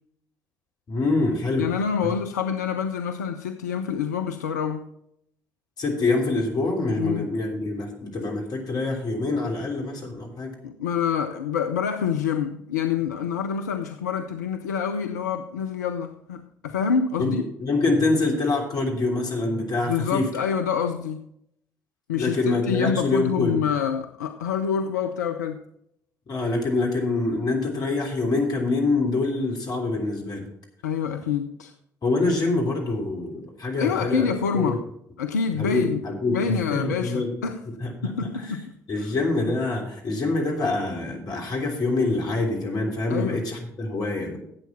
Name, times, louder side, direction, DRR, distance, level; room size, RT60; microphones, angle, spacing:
voice 1, 0.9-1.7 2.0-2.1 5.8-10.5 17.2-17.3 17.6-20.2 22.1-23.6 26.3-30.5 32.0-34.3 34.5-34.8 35.6-37.3 37.8-38.1 38.4-38.6 38.9-44.4, left 2 dB, 45° left, 1 dB, 3.3 m, -25 dB
voice 2, 1.6-4.9 7.0-7.3 10.6-17.4 19.8-21.3 22.1-25.6 30.8-31.7 33.8-34.8 35.2-36.0 36.3-37.6 38.0-39.1 43.1-43.4, left 7 dB, 80° left, 7 dB, 0.5 m, -27 dB
11.5 x 8.4 x 4.3 m, 0.74 s
figure-of-eight pair, 50°, 9 cm